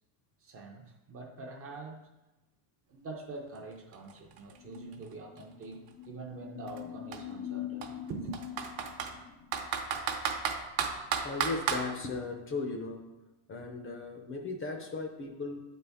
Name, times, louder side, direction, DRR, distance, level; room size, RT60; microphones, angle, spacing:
voice 1, 0.4-2.1 2.9-8.4, right 3 dB, 30° right, 2 dB, 0.6 m, -44 dB
Computer keyboard, 3.5-3.6 3.9-5.9 6.7-6.8 7.1-7.2 7.8-9.1 9.5-11.8, right 7 dB, 50° right, 0.9 m, -33 dB
sound 1, 4.5-9.7, left 11 dB, 90° left, 0.5 m, -44 dB
voice 2, 11.2-13.1 13.5-15.6, left 3 dB, 25° left, 3 dB, 0.5 m, -37 dB
8.8 x 4.1 x 3.4 m, 1.0 s
cardioid pair, 155°, 48 cm